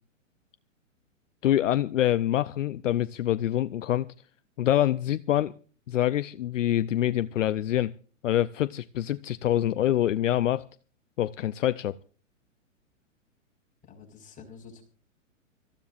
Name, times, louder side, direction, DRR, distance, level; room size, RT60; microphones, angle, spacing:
voice 1, 1.4-4.1 4.6-5.5 5.9-7.9 8.2-10.6 11.2-12.0, left 12 dB, 70° left, 0.6 m, -25 dB
voice 2, 13.8-14.8, left 5 dB, 20° left, 5.0 m, -48 dB
25.5 x 14.5 x 2.5 m
hypercardioid pair, 115°, 39 cm